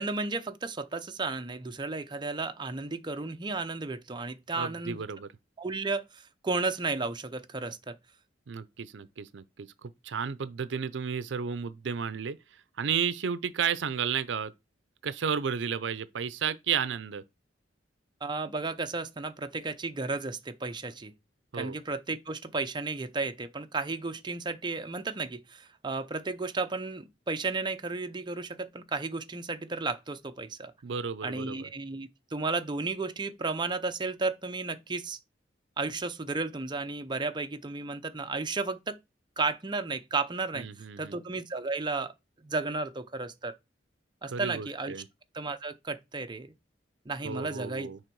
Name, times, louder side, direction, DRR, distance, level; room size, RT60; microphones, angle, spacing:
voice 1, 0.0-5.0 5.6-8.0 18.2-21.1 21.5-30.7 31.2-35.2 35.8-39.0 39.4-42.1 42.4-43.6 44.2-45.0 45.3-46.5 47.1-47.9, right 3 dB, 25° right, 0.6 m, -33 dB
voice 2, 4.6-5.3 8.5-12.4 12.8-14.5 15.0-17.2 21.5-21.8 30.8-31.6 40.6-41.1 44.3-45.0 47.2-48.0, right 7 dB, 75° right, 0.5 m, -32 dB
6.5 x 4.2 x 4.6 m
head